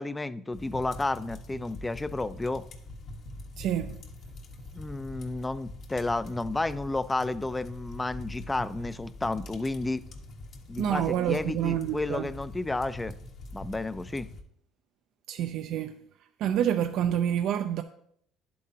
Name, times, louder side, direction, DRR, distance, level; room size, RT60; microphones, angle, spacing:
voice 1, 0.0-2.6 4.7-10.0 10.7-13.1 13.5-14.3, left 2 dB, 15° left, 0.5 m, -31 dB
sound 1, 0.5-14.4, left 1 dB, 55° left, 1.4 m, -44 dB
voice 2, 3.6-4.0 10.8-12.3 15.3-15.9 16.4-17.8, right 10 dB, 65° right, 0.5 m, -28 dB
10.5 x 8.4 x 2.9 m
supercardioid pair, 95°, 0 cm